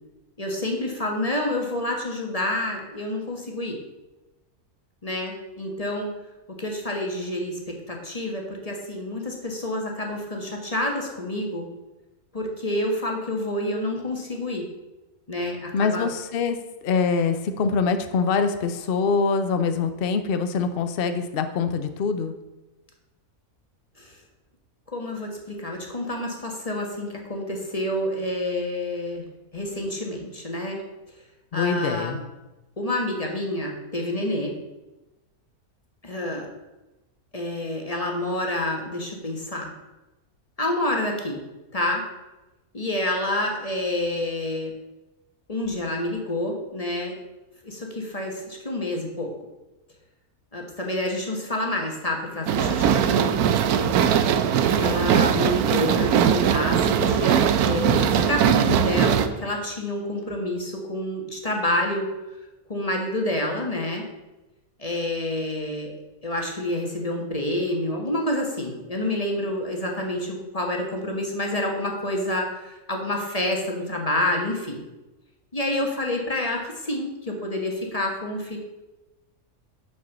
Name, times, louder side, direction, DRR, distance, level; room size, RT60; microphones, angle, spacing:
voice 1, 0.4-3.8 5.0-6.1 6.5-11.7 12.3-14.7 15.3-16.1 24.0-24.2 24.9-29.2 29.5-30.8 31.5-32.2 32.8-34.6 36.0-36.5 37.3-39.7 40.6-41.4 41.7-42.0 42.7-44.7 45.5-47.2 47.6-49.3 50.5-53.5 54.7-62.1 62.7-64.1 64.8-65.9 66.2-74.8 75.5-78.6, left 1 dB, 25° left, 1 dB, 1.4 m, -28 dB
voice 2, 15.7-16.6 16.8-22.3 31.5-32.2, left 5 dB, 50° left, 8 dB, 0.8 m, -24 dB
sound 1, 52.5-59.3, right 8 dB, 90° right, 1.2 m, -20 dB
6.5 x 6.2 x 7.1 m, 1.1 s
omnidirectional pair, 1.6 m